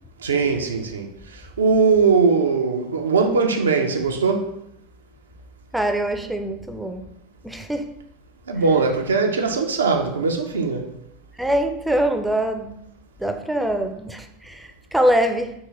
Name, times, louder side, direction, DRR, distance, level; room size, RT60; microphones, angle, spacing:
voice 1, 0.2-4.5 8.5-10.9, right 4 dB, 80° right, 0.4 m, -20 dB
voice 2, 5.7-7.1 7.4-7.9 11.4-12.7 13.2-15.5, right 1 dB, 5° right, 0.4 m, -23 dB
3.6 x 2.7 x 3.0 m
figure-of-eight pair, 80°, 0 cm